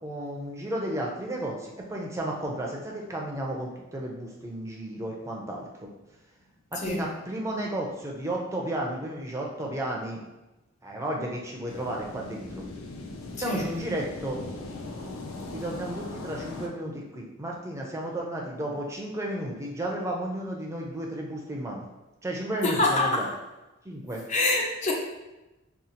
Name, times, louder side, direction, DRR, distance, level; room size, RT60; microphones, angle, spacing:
voice 1, 0.0-5.9 6.7-10.2 10.8-12.6 13.4-14.4 15.5-21.8 22.2-23.3 23.8-24.2, right 1 dB, 15° right, -1 dB, 0.5 m, -33 dB
sound 1, 11.7-16.7, left 2 dB, 85° left, 0.5 m, -39 dB
voice 2, 22.6-23.3 24.3-24.9, left 2 dB, 35° left, 0 dB, 0.6 m, -25 dB
4.9 x 2.4 x 2.8 m, 1.0 s
head